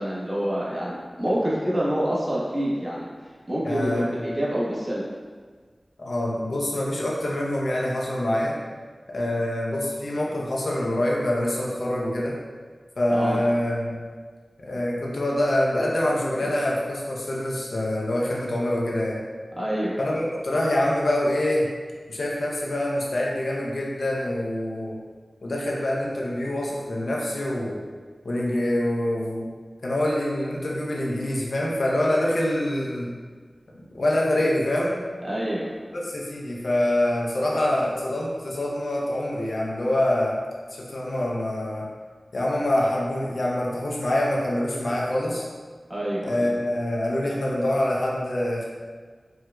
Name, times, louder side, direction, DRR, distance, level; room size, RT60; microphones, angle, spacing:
voice 1, 0.0-3.1 3.5-5.0 13.1-13.4 19.6-19.9 35.2-35.7 45.9-46.5, equal, 35° right, -8 dB, 1.1 m, -27 dB
voice 2, 3.6-4.2 6.0-8.6 9.1-12.4 13.0-14.0 14.6-19.2 20.0-21.7 22.1-25.0 25.4-27.8 28.2-29.5 29.8-33.1 33.9-35.0 35.9-40.3 40.7-41.8 42.3-45.4 46.2-48.6, left 1 dB, 75° left, -4 dB, 0.6 m, -25 dB
4.4 x 2.4 x 2.2 m, 1.5 s
wide cardioid pair, 45°, 0 cm